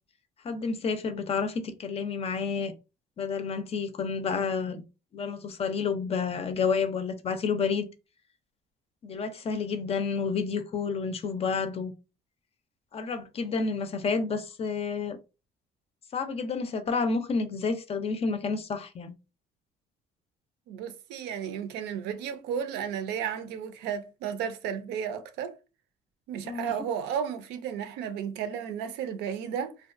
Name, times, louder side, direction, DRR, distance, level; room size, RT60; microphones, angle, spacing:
voice 1, 0.4-2.7 3.2-4.8 5.1-7.9 9.0-11.9 12.9-15.2 16.1-19.1 26.4-26.7, left 5 dB, 35° left, 0.4 m, -30 dB
voice 2, 20.7-25.5 26.3-29.7, right 8 dB, 85° right, 0.5 m, -33 dB
2.5 x 2.2 x 2.5 m
cardioid pair, 110°, 17 cm